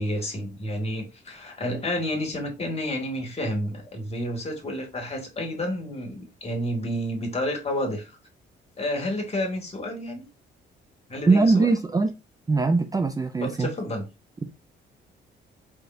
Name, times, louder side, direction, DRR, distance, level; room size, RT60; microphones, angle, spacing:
voice 1, 0.0-8.2 8.8-10.3 11.1-11.7 13.4-14.0, left 1 dB, 30° left, 2.0 m, -30 dB
voice 2, 11.3-12.1 12.5-13.7, right 3 dB, 20° right, 0.4 m, -21 dB
4.8 x 3.7 x 2.6 m
cardioid pair, 90°, 20 cm